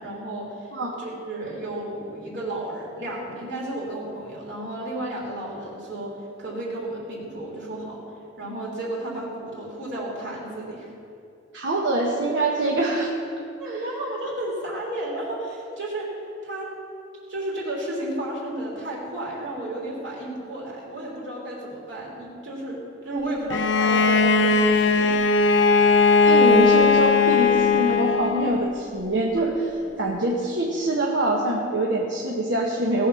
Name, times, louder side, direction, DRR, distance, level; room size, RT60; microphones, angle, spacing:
voice 1, 0.0-0.7 1.0-8.0 8.4-10.9 13.6-16.8 17.3-22.8 23.0-25.1 25.7-26.1 29.3-29.5, right 1 dB, 70° right, -4 dB, 3.4 m, -33 dB
voice 2, 11.5-13.2 13.6-13.7 23.2-23.3 26.2-29.6 30.0-33.1, right 2 dB, 85° right, -2 dB, 1.2 m, -24 dB
Bowed string instrument, 23.5-28.6, left 4 dB, 80° left, 0.6 m, -18 dB
18.0 x 6.8 x 5.6 m, 2.6 s
head